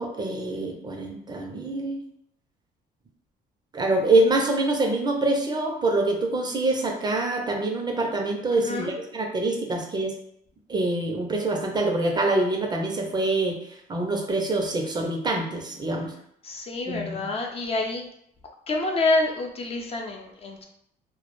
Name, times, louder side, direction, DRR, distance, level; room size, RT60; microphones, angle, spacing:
voice 1, 0.0-2.0 3.7-10.1 10.7-13.6 13.9-16.1 16.9-17.3, right 2 dB, 25° right, 1 dB, 0.4 m, -25 dB
voice 2, 8.6-8.9 16.4-18.1 18.7-20.6, left 2 dB, 35° left, 2 dB, 0.4 m, -27 dB
2.2 x 2.0 x 2.9 m, 0.72 s
cardioid pair, 110°, 17 cm